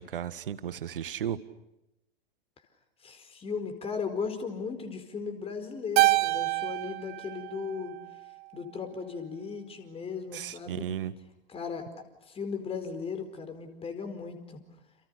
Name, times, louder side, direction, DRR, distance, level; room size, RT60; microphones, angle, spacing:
voice 1, 0.0-1.4 10.3-11.1, right 10 dB, 65° right, 14 dB, 1.8 m, -34 dB
voice 2, 3.0-7.9 8.5-10.9 11.5-14.6, left 5 dB, 20° left, 8 dB, 4.7 m, -37 dB
Keyboard (musical), 6.0-8.5, right 22 dB, 35° right, 0.9 m, -27 dB
30.0 x 29.5 x 6.8 m, 0.90 s
figure-of-eight pair, 95°, 30 cm